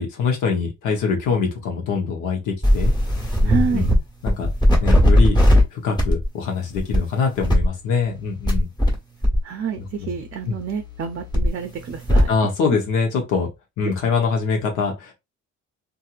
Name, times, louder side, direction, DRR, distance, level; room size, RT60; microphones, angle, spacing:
voice 1, 0.0-2.9 3.4-3.9 4.2-4.5 4.8-5.4 5.7-8.7 10.0-10.1 10.5-10.6 12.3-13.5 13.8-15.1, left 5 dB, 90° left, 1.0 m, -23 dB
sound 1, 2.6-4.0 4.3-5.6 6.0-6.3 6.8-7.0 7.4-9.0 9.2-12.3, equal, 15° left, 1.3 m, -19 dB
voice 2, 3.4-3.9 9.4-12.3 13.9-14.0, right 5 dB, 45° right, 0.5 m, -28 dB
2.8 x 2.6 x 2.4 m
cardioid pair, 90°, 30 cm